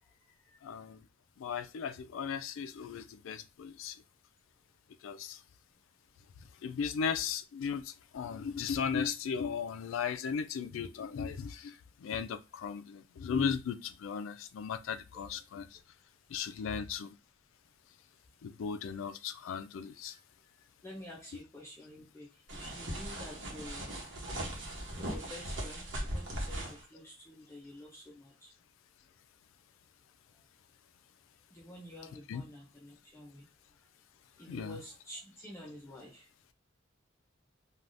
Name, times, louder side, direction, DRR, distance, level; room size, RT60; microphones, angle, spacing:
voice 1, 0.6-1.0 1.4-4.0 5.0-5.4 6.6-15.8 16.3-17.1 18.4-20.2 32.3-32.4 34.5-34.8, left 6 dB, 80° left, 0.3 m, -36 dB
voice 2, 15.1-15.4 16.7-16.9 20.1-20.2 20.8-22.3 22.5-24.1 25.0-28.5 31.5-33.4 34.4-36.3, left 1 dB, 15° left, 0.5 m, -49 dB
sound 1, 22.5-26.8, right 1 dB, 65° right, 1.0 m, -39 dB
3.3 x 2.3 x 2.5 m
head